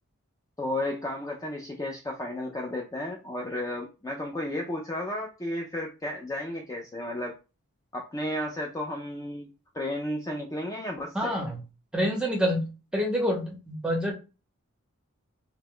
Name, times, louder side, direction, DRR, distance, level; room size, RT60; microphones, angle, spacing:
voice 1, 0.6-7.3 7.9-11.3, left 1 dB, 15° left, 0 dB, 0.3 m, -33 dB
voice 2, 11.1-11.6 11.9-14.1, equal, 5° right, 1 dB, 0.7 m, -27 dB
2.8 x 2.2 x 3.6 m, 0.31 s
head